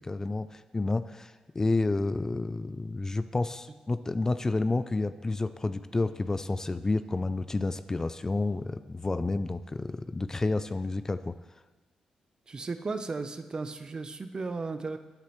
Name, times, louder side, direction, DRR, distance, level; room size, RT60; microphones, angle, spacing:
voice 1, 0.0-11.4, left 2 dB, 25° left, 12 dB, 0.4 m, -30 dB
voice 2, 12.5-15.0, right 3 dB, 35° right, 10 dB, 0.6 m, -35 dB
12.5 x 8.3 x 3.1 m, 1.2 s
cardioid pair, 75°, 2 cm